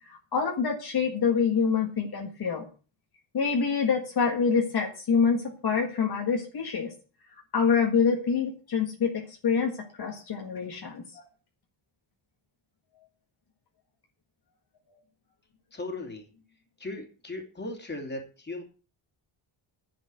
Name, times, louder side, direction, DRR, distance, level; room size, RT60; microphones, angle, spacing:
voice 1, 0.3-2.7 3.3-6.9 7.5-11.2, left 6 dB, 50° left, 1 dB, 1.8 m, -26 dB
voice 2, 15.7-16.3 16.8-18.6, left 2 dB, 20° left, 2 dB, 2.9 m, -37 dB
11.0 x 7.1 x 7.7 m, 0.37 s
wide cardioid pair, 165°, 49 cm